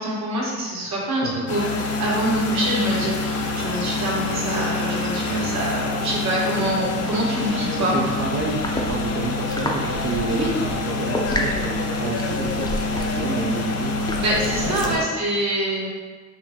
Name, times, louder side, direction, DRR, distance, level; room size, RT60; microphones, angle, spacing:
voice 1, 0.0-8.0 10.3-10.5 14.1-15.9, right 1 dB, 65° right, -4 dB, 1.4 m, -25 dB
sound 1, 1.5-15.0, left 3 dB, 55° left, 0.6 m, -26 dB
voice 2, 7.5-10.5 10.8-14.2 14.9-15.1, right 4 dB, 40° right, -1 dB, 0.5 m, -30 dB
sound 2, 8.4-15.0, left 1 dB, 15° left, 0.6 m, -31 dB
4.8 x 2.7 x 3.5 m, 1.4 s
cardioid pair, 90°, 30 cm